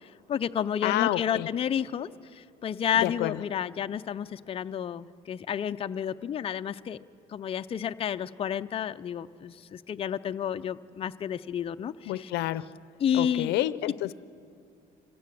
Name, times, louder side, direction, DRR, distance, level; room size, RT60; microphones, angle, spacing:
voice 1, 0.3-2.1 2.6-7.0 7.3-9.5 9.9-11.9 12.2-12.3 13.0-13.5, left 9 dB, 35° left, 9 dB, 0.5 m, -30 dB
voice 2, 0.8-1.5 2.9-3.4 12.1-12.7 13.1-14.1, left 15 dB, 85° left, 16 dB, 0.6 m, -29 dB
25.0 x 16.5 x 7.6 m, 2.6 s
cardioid pair, 110°, 17 cm